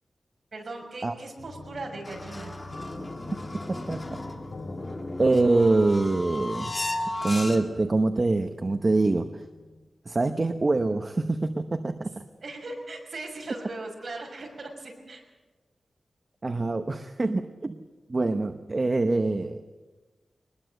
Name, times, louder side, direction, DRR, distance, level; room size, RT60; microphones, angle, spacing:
voice 1, 0.5-2.5 12.4-15.2, right 2 dB, 50° right, 1 dB, 6.2 m, -38 dB
sound 1, 1.4-9.9, left 2 dB, 85° left, 2.0 m, -44 dB
sound 2, 2.1-7.9, left 1 dB, 25° left, 2.0 m, -36 dB
voice 2, 3.7-4.1 5.2-6.7 7.2-9.4 10.1-12.1 16.4-17.8 18.1-19.8, right 2 dB, 35° right, 7 dB, 0.9 m, -25 dB
23.0 x 20.5 x 7.8 m, 1.2 s
wide cardioid pair, 140°, 0 cm